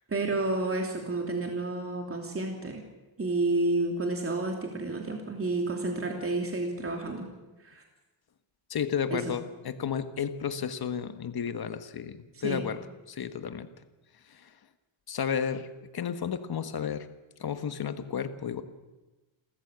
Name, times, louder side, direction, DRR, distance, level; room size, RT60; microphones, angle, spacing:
voice 1, 0.1-2.8 3.2-7.3 7.6-7.8 9.1-9.3 12.3-12.6, right 2 dB, 30° right, 2 dB, 3.0 m, -30 dB
voice 2, 8.7-12.8 13.1-13.7 14.3-14.5 15.1-17.1 17.4-18.6, left 7 dB, 50° left, 10 dB, 1.4 m, -32 dB
29.5 x 14.0 x 8.1 m, 1.2 s
wide cardioid pair, 135°, 47 cm